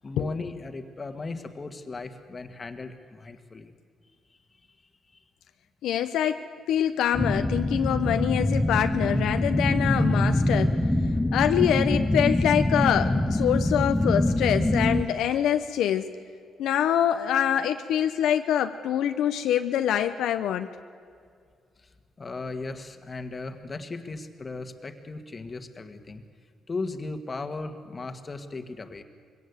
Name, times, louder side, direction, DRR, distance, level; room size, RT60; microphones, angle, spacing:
voice 1, 0.0-3.7 5.1-5.2 22.2-26.2 26.7-29.0, left 3 dB, 30° left, 8 dB, 1.7 m, -37 dB
voice 2, 5.8-6.4 6.7-10.8 11.3-16.1 16.6-20.7, left 10 dB, 80° left, 8 dB, 0.8 m, -25 dB
sound 1, 7.1-15.0, left 1 dB, 10° left, 1.2 m, -24 dB
22.5 x 17.0 x 8.2 m, 2.1 s
cardioid pair, 90°, 0 cm